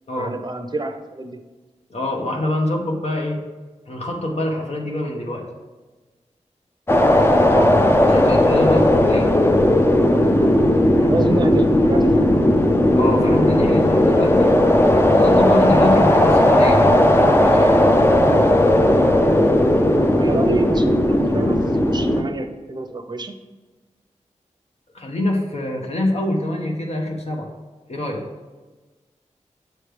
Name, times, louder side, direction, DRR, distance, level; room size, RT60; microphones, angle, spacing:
voice 1, 0.2-1.4 7.5-7.8 11.0-12.3 20.1-23.4, right 3 dB, 35° right, 6 dB, 0.6 m, -28 dB
voice 2, 1.9-3.4 3.9-5.4 8.0-9.3 12.9-14.5 15.0-17.0 17.4-17.8 24.9-27.5 27.9-28.2, left 1 dB, 60° left, 0 dB, 1.0 m, -24 dB
sound 1, 6.9-22.2, left 1 dB, 20° left, 0.5 m, -16 dB
7.8 x 3.2 x 5.0 m, 1.3 s
wide cardioid pair, 75°, 12 cm